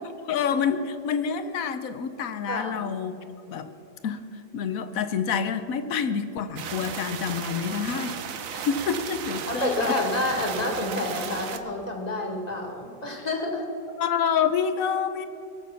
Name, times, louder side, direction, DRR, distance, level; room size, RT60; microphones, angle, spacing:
voice 1, 0.2-3.7 4.0-4.2 4.5-8.2 8.5-10.0 14.0-15.3, left 7 dB, 60° left, 10 dB, 1.0 m, -27 dB
voice 2, 2.5-2.9 9.5-13.7, left 2 dB, 20° left, 1 dB, 2.1 m, -28 dB
sound 1, 6.6-11.6, right 7 dB, 55° right, 1.0 m, -35 dB
22.0 x 7.3 x 5.8 m, 2.8 s
omnidirectional pair, 2.1 m